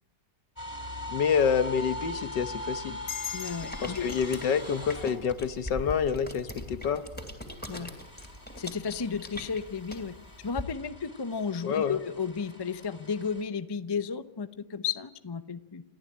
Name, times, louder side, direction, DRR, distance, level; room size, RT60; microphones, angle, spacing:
sound 1, 0.6-5.8 6.2-13.4, left 1 dB, 20° left, 3.1 m, -42 dB
voice 1, 1.1-3.0 3.8-7.0 11.6-12.0, left 7 dB, 75° left, 11 dB, 1.8 m, -27 dB
sound 2, 3.1-6.2, left 8 dB, 60° left, 3.1 m, -42 dB
voice 2, 3.3-4.1 7.7-7.9 8.6-10.1 10.4-15.8, left 6 dB, 40° left, 12 dB, 0.3 m, -33 dB
sound 3, 3.4-10.6, left 1 dB, 5° left, 2.9 m, -41 dB
29.5 x 14.5 x 8.7 m, 1.1 s
omnidirectional pair, 1.9 m